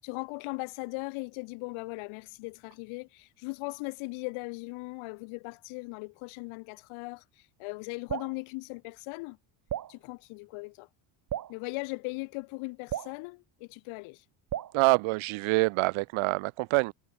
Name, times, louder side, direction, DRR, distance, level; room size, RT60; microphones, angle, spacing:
voice 1, 0.0-9.4 9.9-10.9 11.5-14.2, left 27 dB, 85° left, 6.8 m, -39 dB
Drip, 8.1-8.4 9.7-9.9 11.3-11.6 12.9-13.2 14.5-14.8, right 11 dB, 40° right, 2.5 m, -34 dB
voice 2, 14.7-16.9, right 24 dB, 80° right, 3.7 m, -26 dB
cardioid pair, 130°, 47 cm